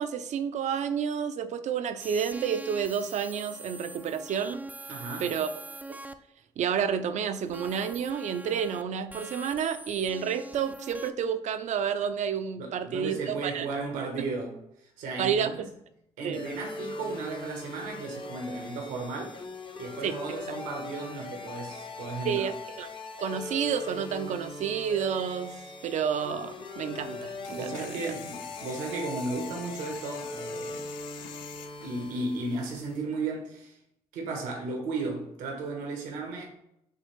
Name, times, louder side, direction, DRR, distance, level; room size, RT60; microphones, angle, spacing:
voice 1, 0.0-4.6 5.2-5.5 5.9-6.0 6.6-13.7 15.2-15.5 16.2-16.4 20.0-20.2 22.2-22.9 23.2-25.6 25.8-28.0, right 7 dB, 65° right, 0.5 m, -30 dB
sound 1, 2.0-6.1 7.4-8.8 9.1-11.1, right 2 dB, 10° right, 0.4 m, -43 dB
voice 2, 4.9-5.3 12.6-14.6 15.0-15.6 16.2-19.4 19.8-22.5 27.5-30.8 31.8-33.8 34.1-36.5, right 3 dB, 85° right, 1.1 m, -35 dB
sound 2, 16.3-32.7, left 3 dB, 40° left, 0.7 m, -40 dB
sound 3, 27.0-33.0, left 10 dB, 80° left, 0.4 m, -47 dB
6.5 x 2.4 x 3.2 m
supercardioid pair, 55°, 13 cm